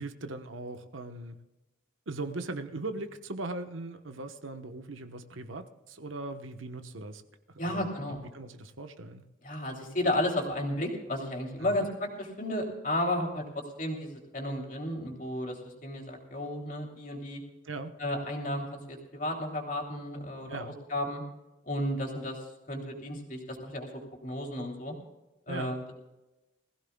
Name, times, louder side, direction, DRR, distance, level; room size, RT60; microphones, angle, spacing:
voice 1, 0.0-1.4 2.1-7.2 7.5-9.2 11.6-11.9 17.6-18.0 20.5-20.7 25.5-25.8, right 2 dB, 85° right, 8 dB, 1.1 m, -39 dB
voice 2, 7.6-8.3 9.4-17.4 18.0-21.2 21.6-24.9 25.5-25.9, left 1 dB, 40° left, 1 dB, 3.1 m, -33 dB
21.5 x 15.5 x 2.3 m, 1.0 s
head